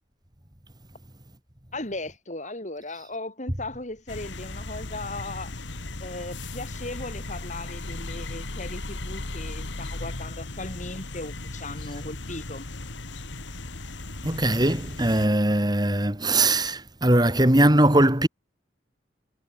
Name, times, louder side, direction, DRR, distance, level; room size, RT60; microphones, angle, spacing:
voice 1, 1.7-5.6 6.0-12.7, left 2 dB, 40° left, 5.7 m, -37 dB
sound 1, 4.1-15.3, left 2 dB, 90° left, 2.3 m, -36 dB
voice 2, 14.2-18.3, right 1 dB, 20° right, 3.0 m, -20 dB
head